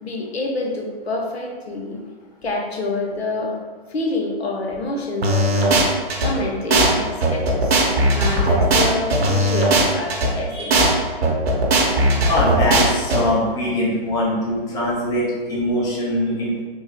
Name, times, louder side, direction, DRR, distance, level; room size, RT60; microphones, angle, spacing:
voice 1, 0.0-2.0 2.4-3.6 3.9-5.8 6.2-7.8 8.1-10.7, left 2 dB, 85° left, 1 dB, 0.7 m, -27 dB
sound 1, 5.2-6.3 6.7-6.9 7.2-10.3 10.7-10.9 11.2-13.2, right 1 dB, 80° right, 0.8 m, -17 dB
voice 2, 10.5-10.8 12.2-16.6, left 1 dB, 10° left, -6 dB, 0.5 m, -22 dB
3.5 x 2.0 x 3.0 m, 1.4 s
hypercardioid pair, 130°, 30 cm